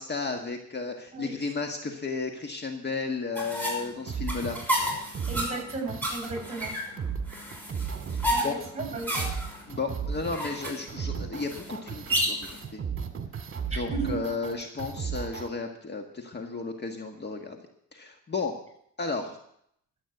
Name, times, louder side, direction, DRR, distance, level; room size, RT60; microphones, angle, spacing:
voice 1, 0.0-4.6 8.4-8.5 9.7-12.8 13.7-17.6 17.9-18.5 19.0-19.4, left 4 dB, 35° left, 3 dB, 1.7 m, -33 dB
sound 1, 3.3-12.6, equal, 5° left, 6.2 m, -32 dB
sound 2, 4.1-15.5, right 6 dB, 45° right, 2.0 m, -35 dB
voice 2, 5.3-6.8 8.3-9.3 13.7-14.2, right 3 dB, 20° right, 3 dB, 6.4 m, -35 dB
12.5 x 8.7 x 7.9 m, 0.71 s
cardioid pair, 90°, 30 cm